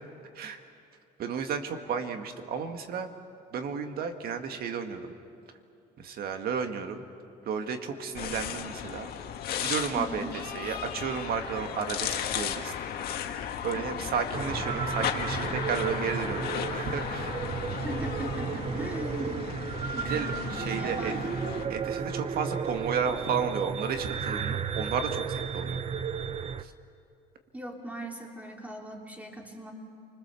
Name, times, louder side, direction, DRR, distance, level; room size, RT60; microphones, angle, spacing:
voice 1, 1.2-3.1 3.5-5.1 6.0-7.0 7.5-9.1 9.6-12.7 13.6-17.3 20.0-21.1 21.7-25.8 26.6-26.7, right 6 dB, 65° right, 6 dB, 1.9 m, -33 dB
sound 1, 8.1-21.7, left 9 dB, 65° left, 1.7 m, -35 dB
voice 2, 10.0-10.8 13.7-13.9 17.8-19.5 19.9-21.3 27.5-29.7, right 1 dB, 10° right, 1 dB, 3.4 m, -39 dB
sound 2, 14.3-26.6, right 6 dB, 35° right, 0.8 m, -33 dB
29.5 x 21.0 x 7.0 m, 2.5 s
cardioid pair, 110°, 17 cm